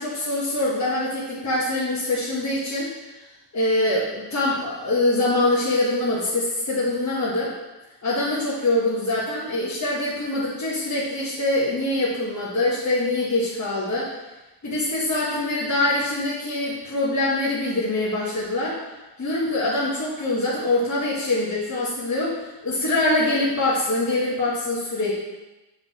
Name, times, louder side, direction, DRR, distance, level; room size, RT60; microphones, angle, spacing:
voice 1, 0.0-2.9 3.5-7.5 8.0-14.1 14.6-18.8 19.2-25.2, left 2 dB, 40° left, -7 dB, 1.3 m, -24 dB
6.8 x 3.9 x 4.1 m, 1.1 s
cardioid pair, 85°, 43 cm